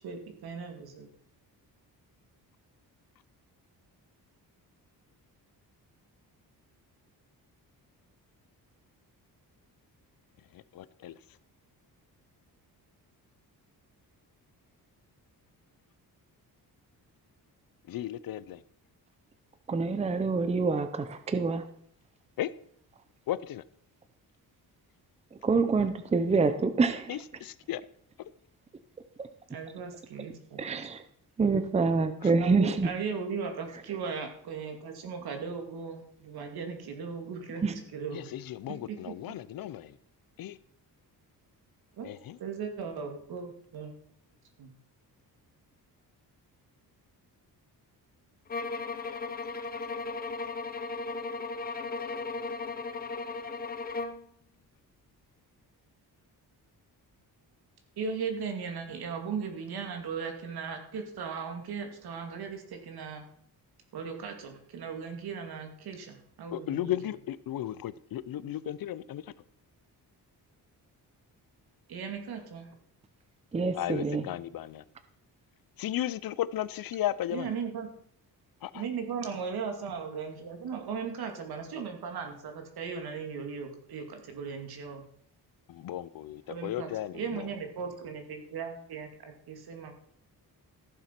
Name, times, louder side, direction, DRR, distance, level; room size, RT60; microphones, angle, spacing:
voice 1, 0.0-1.1 29.5-30.8 32.3-38.3 38.7-39.1 42.0-42.1 42.4-43.9 44.6-44.7 58.0-63.2 63.9-67.0 71.9-72.7 77.3-77.9 78.7-85.0 86.5-89.9, right 6 dB, 70° right, 4 dB, 2.5 m, -37 dB
voice 2, 10.5-11.2 17.9-18.6 22.4-22.5 23.3-23.6 27.1-27.8 32.2-32.3 38.1-40.0 40.4-40.6 42.0-42.4 66.5-69.2 73.7-74.8 75.8-77.5 78.6-78.8 85.7-87.5, left 12 dB, 60° left, 17 dB, 0.6 m, -35 dB
voice 3, 19.7-21.6 25.4-27.2 29.2-29.3 30.6-31.0 31.4-32.9 37.6-37.7 73.5-74.2, right 4 dB, 15° right, 10 dB, 0.6 m, -26 dB
sound 1, 48.5-54.3, left 3 dB, 25° left, 0.7 m, -36 dB
14.5 x 7.3 x 5.9 m, 0.65 s
wide cardioid pair, 175°, 38 cm